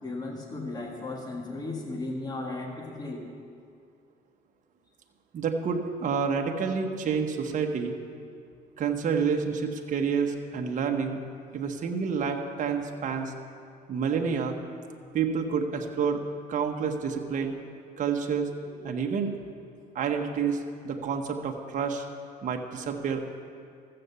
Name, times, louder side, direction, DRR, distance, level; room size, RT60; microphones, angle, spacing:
voice 1, 0.0-3.2, left 2 dB, 25° left, 0 dB, 1.6 m, -35 dB
voice 2, 5.3-7.9 8.8-11.2 11.5-13.3 13.9-14.6 15.1-16.2 16.5-17.5 18.0-19.3 19.9-22.0 22.4-23.2, right 6 dB, 50° right, 2 dB, 1.1 m, -29 dB
14.0 x 7.8 x 6.8 m, 2.3 s
cardioid pair, 110°, 17 cm